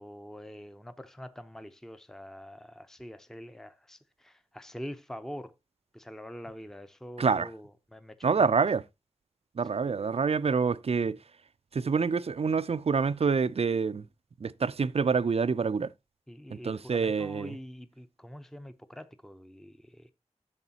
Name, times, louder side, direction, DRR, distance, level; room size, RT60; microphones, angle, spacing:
voice 1, 0.0-5.5 5.9-8.6 9.7-9.9 16.3-20.1, equal, 5° left, 0.6 m, -45 dB
voice 2, 7.2-7.5 8.2-8.8 9.6-11.2 11.7-14.0 14.4-15.9 16.5-17.6, right 5 dB, 55° right, 0.5 m, -27 dB
11.0 x 7.1 x 2.8 m
wide cardioid pair, 90°, 12 cm